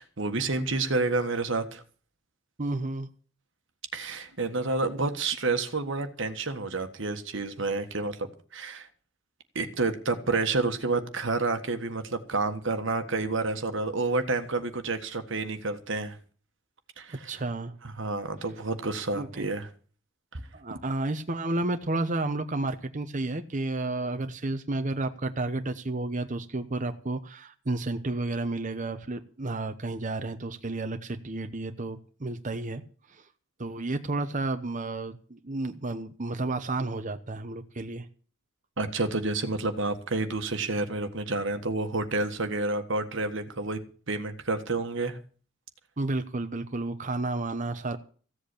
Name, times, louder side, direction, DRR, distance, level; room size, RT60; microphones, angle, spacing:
voice 1, 0.0-1.8 3.9-8.9 9.5-16.2 17.0-17.3 17.8-19.7 20.3-20.4 38.8-43.8 44.1-45.2, right 3 dB, 60° right, 8 dB, 1.5 m, -29 dB
voice 2, 2.6-3.1 17.2-17.7 19.1-19.5 20.5-32.8 33.1-33.3 33.6-38.1 46.0-48.0, right 2 dB, 35° right, 8 dB, 0.9 m, -31 dB
15.5 x 8.0 x 8.5 m, 0.41 s
head